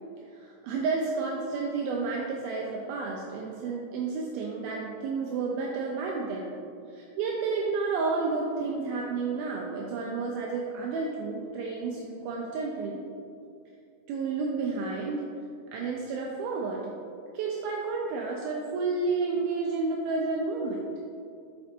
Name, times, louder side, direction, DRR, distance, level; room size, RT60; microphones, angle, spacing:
voice 1, 0.3-6.6 6.9-13.0 14.1-15.2 15.7-16.9 17.3-20.8, right 4 dB, 90° right, -2 dB, 2.1 m, -31 dB
6.0 x 5.2 x 4.3 m, 2.5 s
omnidirectional pair, 4.9 m